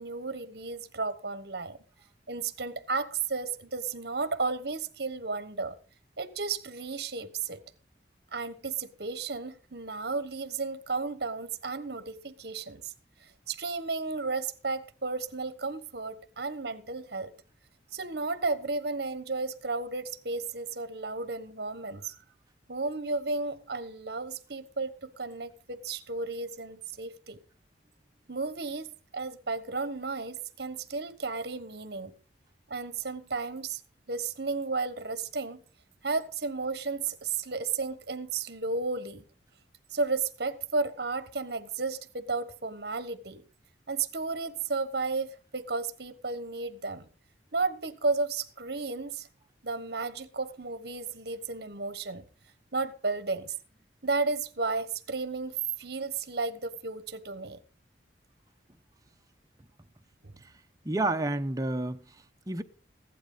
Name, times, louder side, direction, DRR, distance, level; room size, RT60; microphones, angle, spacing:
voice 1, 0.0-1.8 2.3-5.8 6.2-7.6 8.3-12.9 13.5-17.3 17.9-22.1 22.7-27.4 28.3-32.1 32.7-33.8 34.1-35.6 36.0-39.2 39.9-43.4 43.9-47.1 47.5-49.3 49.6-52.2 52.7-53.5 54.0-57.6 60.2-60.3, right 4 dB, 60° right, 1.2 m, -33 dB
voice 2, 60.8-62.6, right 2 dB, 20° right, 0.8 m, -30 dB
15.5 x 11.5 x 4.0 m
head